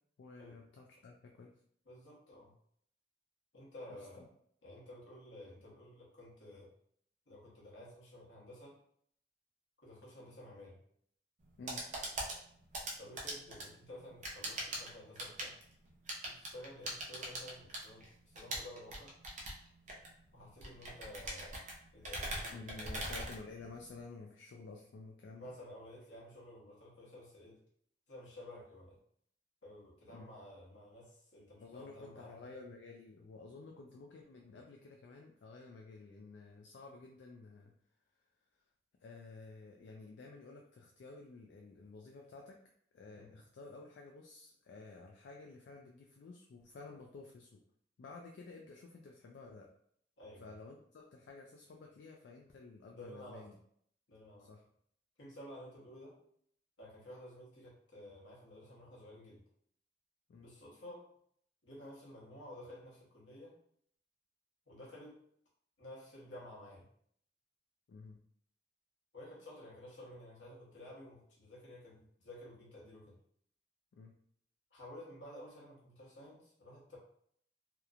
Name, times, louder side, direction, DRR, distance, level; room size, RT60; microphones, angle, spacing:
voice 1, 0.2-1.5 3.9-4.3 11.6-11.9 22.5-25.5 30.1-30.3 31.6-37.7 39.0-42.6 42.9-47.6 48.0-49.7 50.4-53.6 54.4-54.6 60.3-60.5 67.9-68.2 73.9-74.1, left 3 dB, 65° left, 1 dB, 0.3 m, -52 dB
voice 2, 1.9-2.5 3.5-4.3 4.6-6.7 7.3-8.8 9.8-10.8 13.0-15.6 16.2-19.1 20.3-21.6 21.9-23.0 25.3-27.6 28.1-29.0 29.6-32.5 43.1-43.4 50.2-50.5 52.9-53.5 54.1-54.5 55.2-56.2 56.8-59.4 60.4-61.1 61.6-63.6 64.7-65.2 65.8-66.9 69.1-73.2 74.7-77.0, left 1 dB, 85° left, -4 dB, 1.0 m, -52 dB
sound 1, 11.4-24.0, right 1 dB, 40° right, 0.6 m, -43 dB
2.9 x 2.0 x 2.4 m, 0.65 s
head